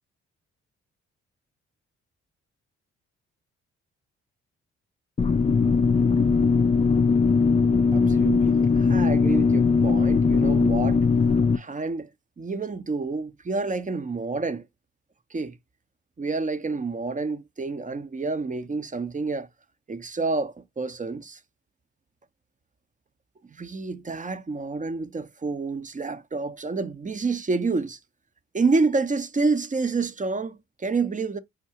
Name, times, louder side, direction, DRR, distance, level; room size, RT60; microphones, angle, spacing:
sound 1, 5.2-11.6, left 4 dB, 20° left, 0.4 m, -20 dB
voice 1, 7.9-11.0 11.5-12.1 12.4-14.7 15.3-15.6 16.2-19.5 19.9-21.4 23.5-28.0 28.5-31.4, right 3 dB, 25° right, 0.6 m, -28 dB
4.7 x 2.1 x 2.8 m
hypercardioid pair, 45°, 31 cm